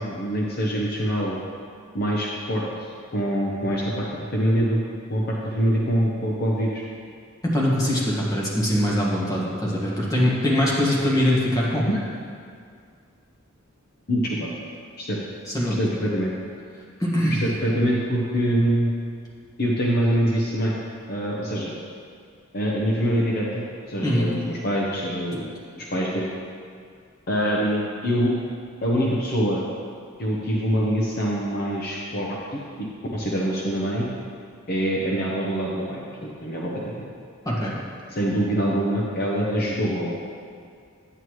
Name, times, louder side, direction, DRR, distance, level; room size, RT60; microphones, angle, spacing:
voice 1, 0.0-1.4 1.9-4.8 5.1-6.8 11.9-12.0 14.1-14.5 15.0-15.2 15.7-16.3 17.4-18.9 19.6-20.7 21.1-21.7 22.5-26.3 27.3-28.3 28.8-29.6 30.2-32.9 33.1-34.1 34.7-37.0 38.1-40.1, equal, 50° left, -3 dB, 0.9 m, -24 dB
voice 2, 7.4-11.9 15.5-15.8 17.0-17.5 24.0-24.3 37.4-37.8, equal, 20° left, -6 dB, 1.7 m, -22 dB
9.6 x 8.9 x 3.2 m, 2.2 s
head